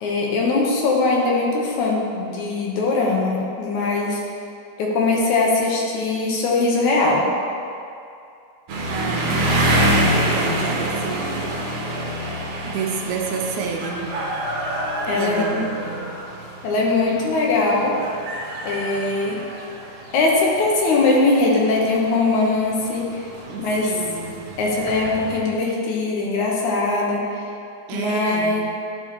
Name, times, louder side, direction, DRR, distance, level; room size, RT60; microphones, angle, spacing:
voice 1, 0.0-4.2 4.8-7.2 15.1-15.6 16.6-17.9 18.7-19.4 20.1-23.2 23.6-23.9 24.6-27.4 27.9-28.6, left 3 dB, 75° left, -2 dB, 2.4 m, -21 dB
sound 1, 8.7-25.4, right 1 dB, 65° right, 1.6 m, -27 dB
voice 2, 8.9-11.4 12.6-14.1 15.1-16.1 23.5-24.5 27.9-28.6, right 6 dB, 80° right, 2 dB, 2.0 m, -30 dB
10.5 x 5.2 x 2.9 m, 2.5 s
omnidirectional pair, 3.5 m